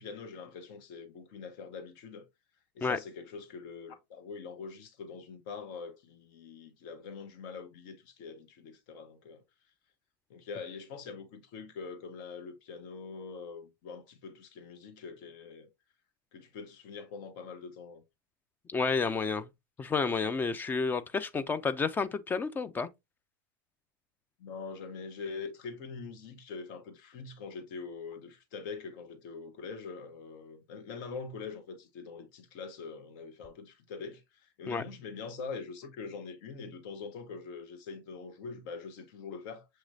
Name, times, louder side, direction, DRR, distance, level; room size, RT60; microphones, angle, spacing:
voice 1, 0.0-2.2 2.7-9.4 10.3-15.7 16.3-18.0 24.4-39.7, left 5 dB, 55° left, 1.1 m, -43 dB
voice 2, 18.7-19.5 19.8-22.9 34.7-34.8, left 4 dB, 15° left, 0.4 m, -30 dB
6.4 x 3.0 x 2.6 m
hypercardioid pair, 110°, 12 cm